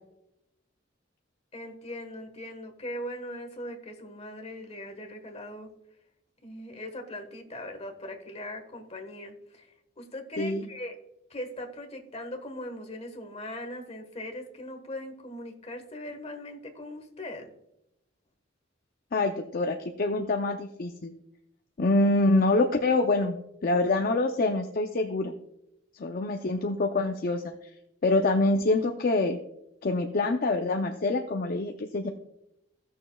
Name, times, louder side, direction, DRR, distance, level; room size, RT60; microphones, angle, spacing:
voice 1, 1.5-5.7 6.4-9.7 10.0-11.0 11.3-17.5, left 1 dB, 35° left, 4 dB, 1.3 m, -40 dB
voice 2, 10.4-10.7 19.1-21.1 21.8-23.4 23.6-25.3 25.9-27.5 28.0-29.4 29.8-32.1, left 2 dB, 50° left, 4 dB, 0.5 m, -25 dB
16.0 x 6.4 x 2.3 m, 0.84 s
head